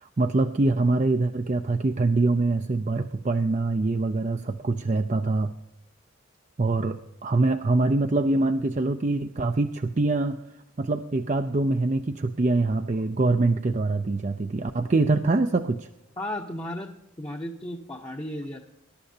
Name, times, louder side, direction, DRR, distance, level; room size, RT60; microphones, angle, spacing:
voice 1, 0.0-5.5 6.6-10.4 10.8-15.9, right 2 dB, 35° right, 7 dB, 0.4 m, -24 dB
voice 2, 16.2-16.9 17.2-18.6, left 1 dB, 20° left, 1 dB, 0.8 m, -34 dB
20.5 x 11.0 x 2.8 m, 0.85 s
head